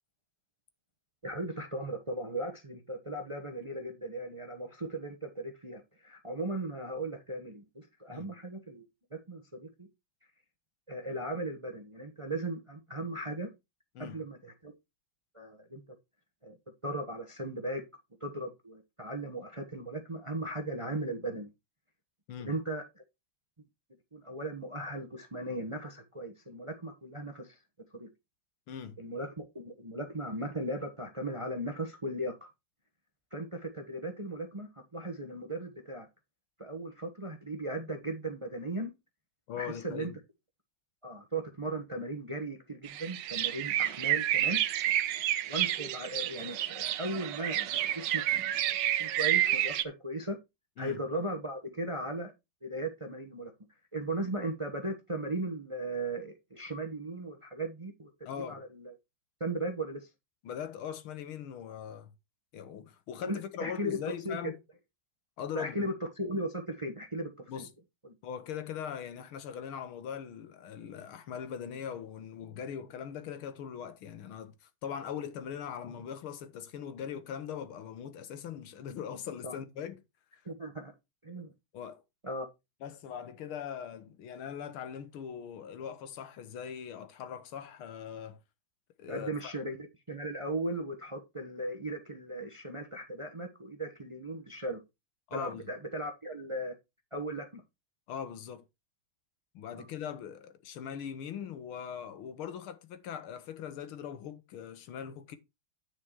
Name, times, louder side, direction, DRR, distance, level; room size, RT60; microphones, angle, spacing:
voice 1, 1.2-9.9 10.9-13.5 14.0-14.7 15.3-15.8 16.4-16.6 16.8-17.8 18.2-21.5 22.4-22.8 24.1-27.6 27.9-28.1 29.0-32.5 33.3-36.1 36.6-38.9 39.6-40.1 41.0-44.6 45.5-48.5 49.0-50.4 50.8-52.3 52.6-53.5 53.9-58.1 58.5-58.9 59.4-60.1 63.2-64.4 65.5-67.6 68.0-68.1 79.4-79.6 80.4-80.9 81.2-81.5 82.2-82.5 89.1-94.8 95.3-96.7 97.1-97.6 99.7-99.8, right 1 dB, 25° right, 0.8 m, -37 dB
voice 2, 28.7-29.0 39.5-40.2 50.8-51.0 58.3-58.6 60.4-62.1 62.5-64.6 65.4-65.9 67.5-67.7 68.2-80.0 81.7-82.0 82.8-88.4 89.0-89.5 95.3-95.6 98.1-98.6 99.5-105.4, left 8 dB, 90° left, 1.9 m, -41 dB
sound 1, 42.9-49.8, right 12 dB, 70° right, 1.3 m, -30 dB
9.8 x 4.9 x 4.4 m
omnidirectional pair, 2.2 m